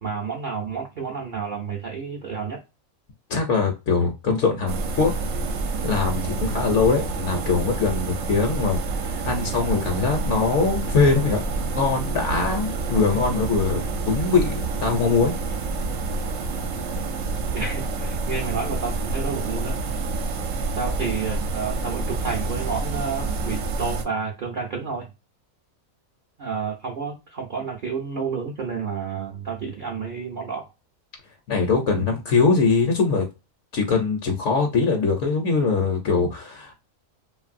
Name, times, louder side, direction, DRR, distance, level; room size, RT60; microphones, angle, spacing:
voice 1, 0.0-2.6 17.5-19.8 20.7-25.1 26.4-30.7, right 5 dB, 50° right, 0.6 m, -30 dB
voice 2, 3.3-5.1 5.8-15.3 31.5-33.3 33.7-36.7, left 4 dB, 65° left, 0.9 m, -22 dB
sound 1, 4.7-24.0, right 3 dB, 70° right, 1.0 m, -28 dB
3.0 x 2.6 x 2.4 m
omnidirectional pair, 1.5 m